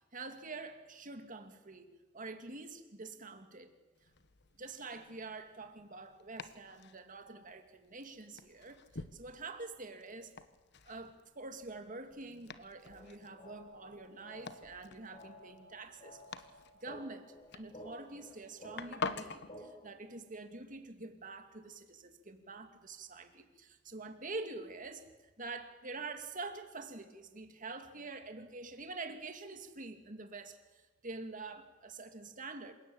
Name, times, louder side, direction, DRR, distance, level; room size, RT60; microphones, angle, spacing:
voice 1, 0.1-3.7 4.6-10.3 10.8-16.2 16.8-32.7, right 3 dB, 45° right, 7 dB, 2.4 m, -46 dB
Domestic sounds home sounds, 4.0-19.5, left 4 dB, 60° left, 1.2 m, -48 dB
sound 1, 12.9-19.9, equal, 35° left, 3.5 m, -54 dB
27.5 x 17.5 x 8.8 m, 1.2 s
head